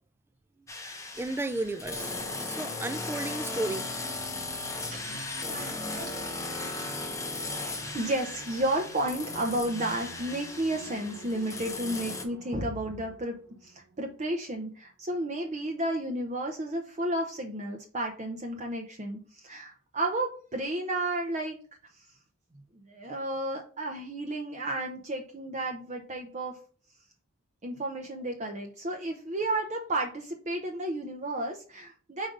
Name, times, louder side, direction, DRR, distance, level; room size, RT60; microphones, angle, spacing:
sound 1, 0.7-12.3, left 3 dB, 15° left, 0.8 m, -37 dB
voice 1, 1.2-2.1 2.4-3.9, right 2 dB, 10° right, 0.3 m, -33 dB
sound 2, 3.1-14.6, right 2 dB, 90° right, 1.1 m, -48 dB
voice 2, 4.9-6.4 7.1-13.4 13.6-21.6 21.9-22.1 22.9-26.6 27.6-32.3, right 1 dB, 35° right, 0.7 m, -32 dB
5.1 x 3.9 x 4.9 m
head